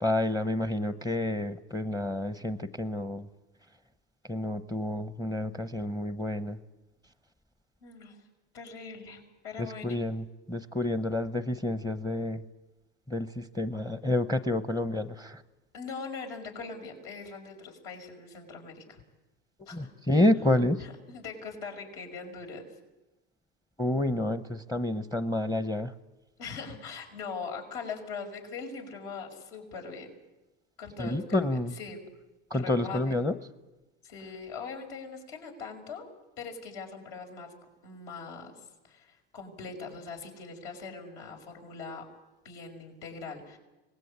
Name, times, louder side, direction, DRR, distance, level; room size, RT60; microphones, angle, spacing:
voice 1, 0.0-3.3 4.3-6.6 9.6-12.4 13.1-15.4 19.7-20.9 23.8-25.9 31.0-31.7 32.5-33.4, left 1 dB, 10° left, 11 dB, 0.8 m, -29 dB
voice 2, 7.8-8.2 8.5-10.0 15.7-19.0 19.7-19.9 20.8-22.7 26.4-30.1 30.8-32.0 32.5-33.2 34.0-36.1 36.4-37.5 37.8-38.5 38.8-42.0 42.4-43.6, left 5 dB, 75° left, 2 dB, 5.8 m, -41 dB
25.5 x 20.0 x 8.7 m, 1.1 s
supercardioid pair, 110°, 31 cm